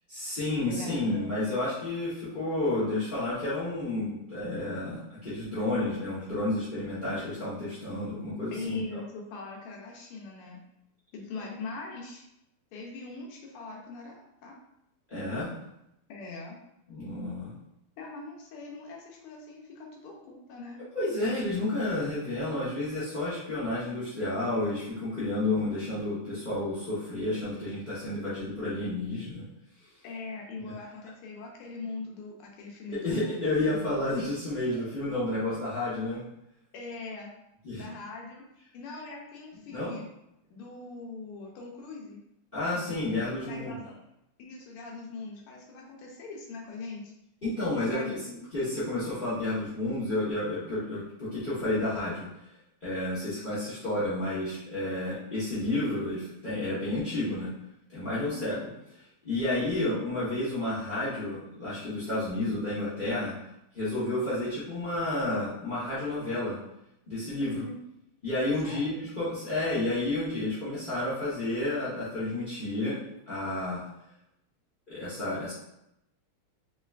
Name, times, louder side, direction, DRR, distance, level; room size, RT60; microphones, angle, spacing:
voice 1, 0.1-9.0 15.1-15.5 16.9-17.5 20.9-29.4 33.0-36.2 37.6-37.9 39.7-39.9 42.5-43.8 47.4-48.2 48.5-52.3 52.8-57.5 57.9-58.5 59.2-63.3 63.7-66.5 67.1-67.6 68.2-73.0 73.3-73.8 74.9-75.5, left 2 dB, 50° left, -13 dB, 0.6 m, -31 dB
voice 2, 0.7-1.3 8.5-10.6 11.1-12.2 12.7-14.6 16.1-16.6 18.0-20.8 30.0-33.5 36.7-37.3 37.8-38.4 38.7-40.1 40.5-42.2 43.1-44.0 44.4-47.1 47.8-48.4 58.2-58.6 67.4-67.8 68.6-69.0, left 3 dB, 85° left, -1 dB, 1.6 m, -41 dB
3.7 x 3.2 x 2.3 m, 0.83 s
omnidirectional pair, 2.4 m